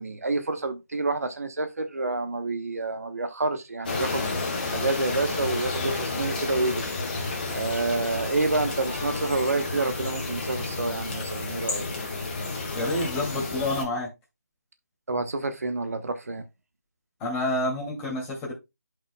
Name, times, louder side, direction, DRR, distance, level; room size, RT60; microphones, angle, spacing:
voice 1, 0.0-4.3 4.7-6.9 7.2-7.3 7.5-11.8 15.1-16.5, right 3 dB, 65° right, 1.1 m, -28 dB
sound 1, 3.8-13.8, left 3 dB, 35° left, 2.2 m, -31 dB
voice 2, 12.7-14.1 17.2-18.5, left 1 dB, 10° left, 2.4 m, -28 dB
11.5 x 5.5 x 2.2 m
figure-of-eight pair, 160°, 9 cm